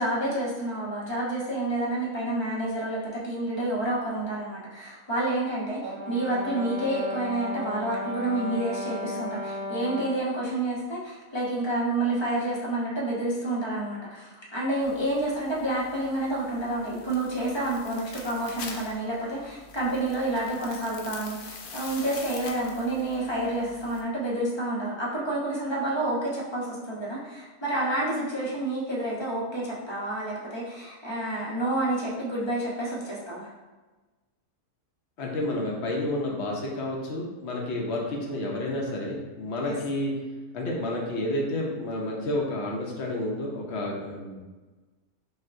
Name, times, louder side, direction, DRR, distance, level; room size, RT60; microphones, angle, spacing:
voice 1, 0.0-33.5 39.6-39.7, right 1 dB, 25° left, -5 dB, 0.6 m, -29 dB
Brass instrument, 5.8-10.2, left 1 dB, 85° right, 1.3 m, -34 dB
sound 1, 14.8-24.0, left 4 dB, 80° left, 0.4 m, -45 dB
voice 2, 35.2-40.1 40.5-44.4, left 1 dB, 60° left, -2 dB, 0.9 m, -30 dB
6.2 x 2.1 x 2.5 m, 1.2 s
omnidirectional pair, 1.5 m